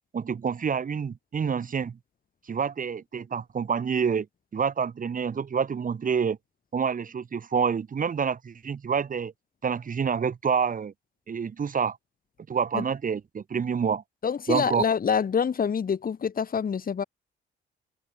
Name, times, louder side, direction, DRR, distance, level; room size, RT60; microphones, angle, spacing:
voice 1, 0.1-2.0 2.5-4.3 4.5-6.4 6.7-9.3 9.6-10.9 11.3-12.0 12.5-14.0 14.5-14.8, right 6 dB, 45° right, 2.9 m, -27 dB
voice 2, 14.2-17.0, left 7 dB, 45° left, 5.7 m, -26 dB
open air
cardioid pair, 90°, 20 cm